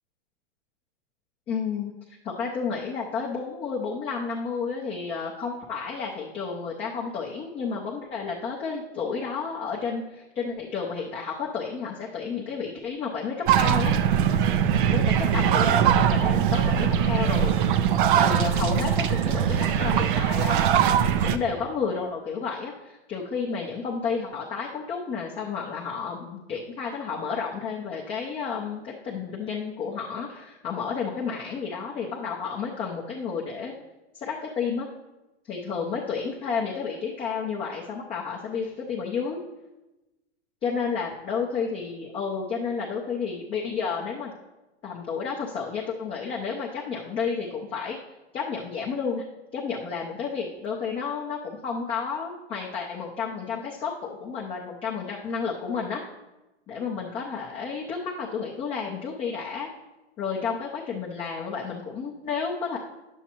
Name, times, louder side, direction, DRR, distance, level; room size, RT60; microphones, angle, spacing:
voice 1, 1.5-1.9 2.2-13.9 14.9-17.7 18.1-33.7 34.1-34.9 35.5-39.4 40.6-44.3 44.8-48.0 48.3-49.3 49.5-56.0 56.7-59.7 60.2-62.8, left 5 dB, 15° left, -3 dB, 0.5 m, -31 dB
sound 1, 13.5-21.4, right 9 dB, 50° right, 0.4 m, -21 dB
9.5 x 7.2 x 2.9 m, 1.0 s
hypercardioid pair, 140°, 35 cm